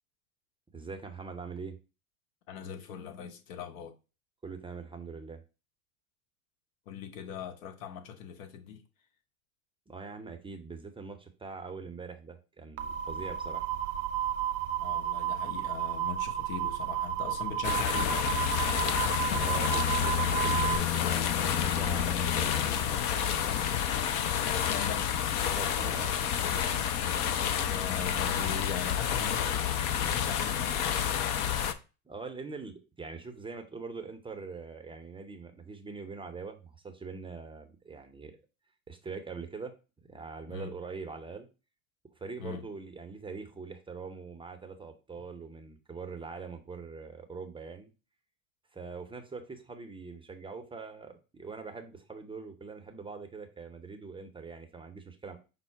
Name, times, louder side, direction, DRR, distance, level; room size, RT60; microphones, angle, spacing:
voice 1, 0.7-1.8 4.4-5.4 9.9-13.7 19.3-23.0 25.5-26.1 32.1-38.3 38.9-39.7 40.1-41.5 42.2-47.9 48.7-55.4, right 4 dB, 10° right, 0.6 m, -43 dB
voice 2, 2.5-3.9 6.9-8.8 14.8-18.1 24.4-25.1 27.7-30.9 40.5-40.7 42.4-42.6, left 8 dB, 65° left, 1.0 m, -39 dB
sound 1, 12.8-20.8, right 11 dB, 65° right, 0.7 m, -32 dB
sound 2, 17.6-31.7, left 9 dB, 50° left, 0.6 m, -29 dB
5.4 x 2.0 x 4.4 m
hypercardioid pair, 85°, 42 cm